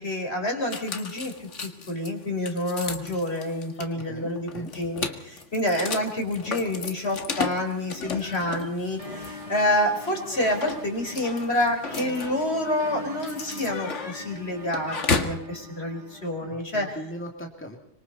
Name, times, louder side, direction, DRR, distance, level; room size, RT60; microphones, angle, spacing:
voice 1, 0.0-16.9, left 1 dB, 60° left, 3 dB, 5.1 m, -28 dB
sound 1, 0.7-15.4, left 4 dB, 75° left, 2.0 m, -34 dB
voice 2, 3.9-4.7 16.4-17.8, equal, 10° left, 2 dB, 2.6 m, -39 dB
sound 2, 9.0-16.6, left 1 dB, 30° right, 2.3 m, -42 dB
25.5 x 24.5 x 4.2 m, 0.74 s
omnidirectional pair, 1.3 m